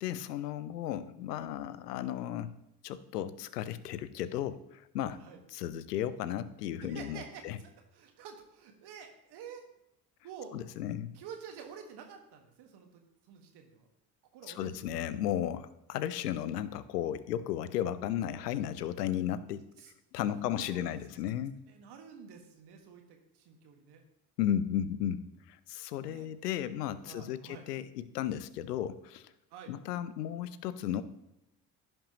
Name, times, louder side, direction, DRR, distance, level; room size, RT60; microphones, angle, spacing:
voice 1, 0.0-2.5 2.8-5.2 5.5-7.6 10.5-11.1 14.5-19.6 20.1-21.6 24.4-29.3 29.7-31.0, left 10 dB, 75° left, 16 dB, 0.6 m, -34 dB
voice 2, 6.8-7.5 7.9-9.7 10.2-10.5 11.1-13.0 13.3-13.8 14.3-15.0 19.8-19.9 20.2-21.0 21.7-24.0 26.0-26.3 27.0-27.7 29.5-29.7, right 7 dB, 55° right, 4 dB, 1.6 m, -49 dB
16.0 x 5.4 x 3.0 m, 0.87 s
figure-of-eight pair, 50°, 48 cm